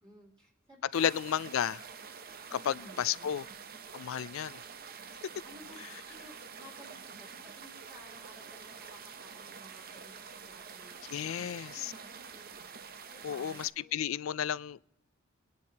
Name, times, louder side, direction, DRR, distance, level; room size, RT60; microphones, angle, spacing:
voice 1, 0.0-1.4 2.5-3.3 5.4-12.5 13.1-14.0, equal, 25° right, 2.7 m, -56 dB
voice 2, 0.9-1.8 2.5-3.5 3.9-4.6 11.1-11.9 13.2-14.8, left 9 dB, 85° left, 0.4 m, -33 dB
sound 1, 0.9-13.7, right 6 dB, 50° right, 0.7 m, -47 dB
22.5 x 10.5 x 2.9 m
head